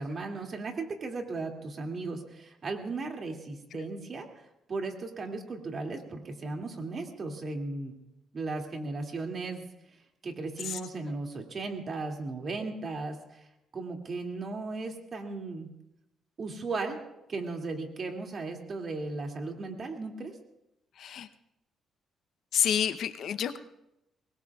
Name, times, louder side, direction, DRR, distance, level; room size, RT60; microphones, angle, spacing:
voice 1, 0.0-4.3 4.7-8.0 8.3-9.6 9.9-10.0 10.2-13.5 13.7-15.7 16.4-17.0 17.3-20.3, right 3 dB, 45° right, 2 dB, 2.4 m, -36 dB
voice 2, 21.0-21.3 22.5-23.6, left 9 dB, 70° left, 11 dB, 0.8 m, -29 dB
24.0 x 20.5 x 2.4 m, 0.86 s
cardioid pair, 90°, 0 cm